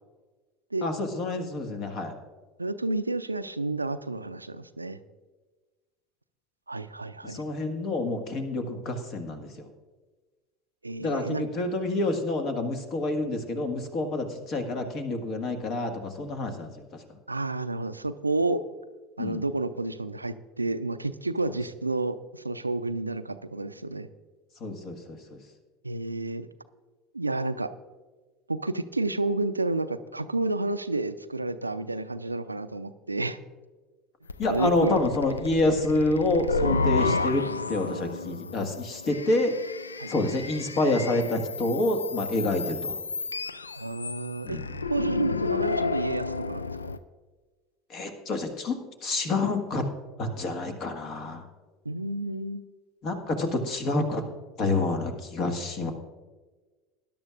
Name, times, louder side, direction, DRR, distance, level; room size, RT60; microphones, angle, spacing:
voice 1, 0.8-2.1 7.2-9.7 11.0-16.8 19.2-19.4 24.6-25.4 34.4-37.4 37.7-39.5 40.1-43.0 44.4-44.6 47.9-48.8 49.0-49.8 50.2-51.5 53.0-54.2 54.6-55.9, left 2 dB, 45° left, 6 dB, 1.7 m, -28 dB
voice 2, 2.6-5.0 6.7-7.4 10.8-11.4 17.3-18.6 19.2-24.1 25.8-26.5 27.1-27.7 28.5-33.4 34.5-35.0 36.9-37.0 40.0-40.1 43.8-44.6 44.9-46.6 51.9-52.6, right 2 dB, 85° right, 12 dB, 0.4 m, -30 dB
sound 1, 34.3-47.0, left 4 dB, 80° left, 0.4 m, -31 dB
20.0 x 11.0 x 2.5 m, 1.3 s
figure-of-eight pair, 70°, 0 cm